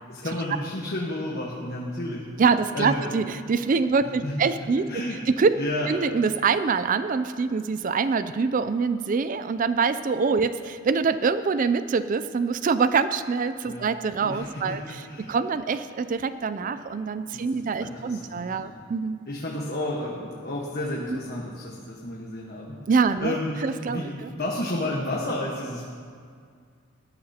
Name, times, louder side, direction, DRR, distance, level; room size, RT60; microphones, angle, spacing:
voice 1, 0.1-2.2 2.7-3.0 4.2-4.5 4.9-5.2 5.6-5.9 13.6-13.9 14.2-15.4 16.7-16.8 17.3-18.7 19.3-22.7 23.2-23.5 23.9-25.8, left 1 dB, 45° left, -4 dB, 1.3 m, -31 dB
voice 2, 2.4-4.9 5.3-5.6 5.9-19.2 21.1-21.2 22.9-24.3, right 5 dB, 35° right, 12 dB, 0.3 m, -25 dB
19.0 x 12.5 x 2.9 m, 2.1 s
head